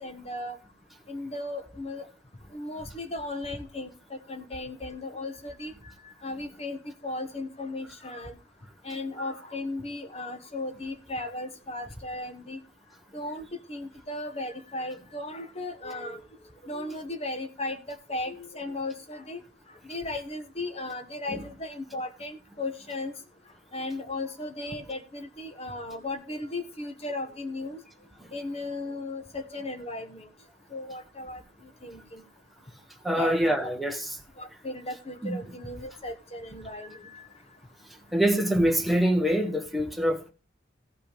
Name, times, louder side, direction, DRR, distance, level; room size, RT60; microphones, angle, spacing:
voice 1, 0.0-0.6 1.1-2.1 2.5-5.7 6.2-8.4 8.8-12.6 13.1-16.2 16.6-19.4 19.8-23.1 23.7-27.8 28.3-30.3 30.7-31.4 31.8-32.2 33.2-33.7 34.4-37.2, left 2 dB, 30° left, 1.4 m, -36 dB
voice 2, 33.0-34.1 35.2-35.4 38.1-40.3, equal, ahead, 1.2 m, -25 dB
15.0 x 5.7 x 5.2 m
head